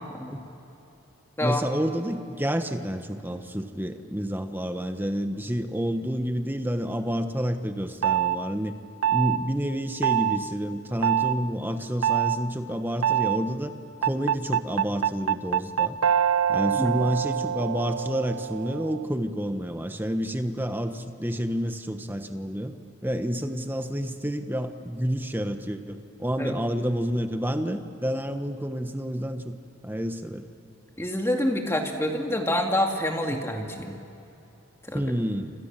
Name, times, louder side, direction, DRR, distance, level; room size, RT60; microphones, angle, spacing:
voice 1, 1.4-8.7 9.1-13.7 14.0-16.0 16.5-22.7 23.0-29.6 29.8-30.5 34.9-35.5, equal, 10° right, 7 dB, 1.2 m, -29 dB
sound 1, 8.0-8.4 9.0-9.4 10.0-10.4 11.0-11.4 12.0-12.4 13.0-13.4 14.0-19.1, right 10 dB, 90° right, 0.7 m, -24 dB
voice 2, 31.0-34.0 34.8-35.1, left 1 dB, 10° left, 2 dB, 2.3 m, -27 dB
29.0 x 27.0 x 7.5 m, 2.8 s
head